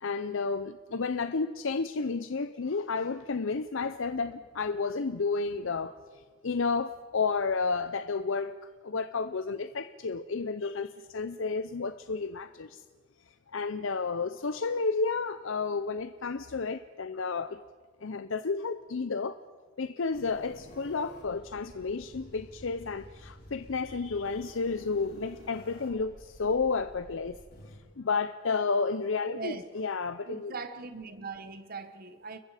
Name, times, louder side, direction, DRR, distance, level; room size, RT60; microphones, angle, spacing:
voice 1, 0.0-8.6 8.8-12.8 13.5-17.6 18.0-19.4 19.8-27.4 28.0-30.5, left 4 dB, 65° left, 0.6 m, -31 dB
sound 1, 20.1-27.8, equal, 50° left, 3.9 m, -51 dB
voice 2, 29.3-29.6 30.3-32.4, right 4 dB, 45° right, 1.3 m, -40 dB
29.5 x 22.0 x 5.0 m
head